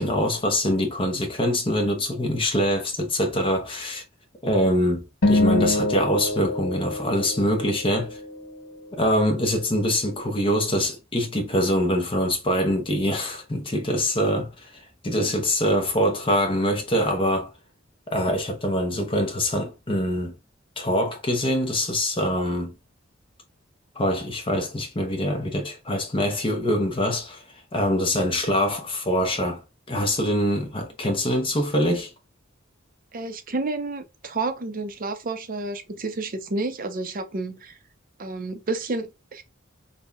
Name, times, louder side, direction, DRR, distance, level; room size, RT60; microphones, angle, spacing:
voice 1, 0.0-4.0 4.4-8.2 8.9-17.5 18.1-20.3 20.8-22.7 24.0-27.4 27.7-29.6 29.9-32.1, equal, 25° left, 0.7 m, -24 dB
sound 1, 5.2-7.8, left 2 dB, 75° left, 1.0 m, -24 dB
voice 2, 33.1-37.8 38.2-39.4, right 3 dB, 45° right, 0.6 m, -30 dB
5.3 x 2.2 x 2.3 m
head